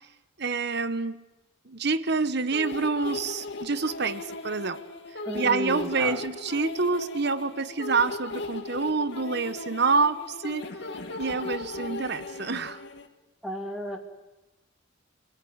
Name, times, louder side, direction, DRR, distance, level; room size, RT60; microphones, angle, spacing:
voice 1, 0.4-1.2 1.7-4.8 5.3-10.7 11.2-12.8, right 4 dB, 60° right, 13 dB, 1.2 m, -27 dB
sound 1, 2.5-13.1, left 2 dB, 60° left, 2.1 m, -37 dB
voice 2, 5.2-6.2 13.4-14.0, equal, 5° right, 2 dB, 2.3 m, -33 dB
28.5 x 18.5 x 9.7 m, 1.0 s
head